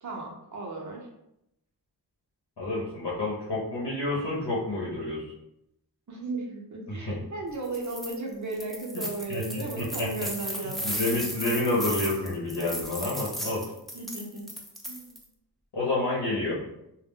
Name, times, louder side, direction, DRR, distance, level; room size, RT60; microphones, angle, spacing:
voice 1, 0.0-1.1 6.1-11.0 13.9-14.6 14.9-15.2, right 2 dB, 45° right, 0 dB, 0.7 m, -36 dB
voice 2, 2.6-5.2 6.9-7.2 8.9-9.0 9.3-10.1 10.8-13.6 15.7-16.6, left 2 dB, 80° left, -6 dB, 0.8 m, -29 dB
sound 1, 7.6-8.1 8.5-15.2, equal, ahead, 0.4 m, -36 dB
2.1 x 2.1 x 3.5 m, 0.83 s
wide cardioid pair, 75°, 40 cm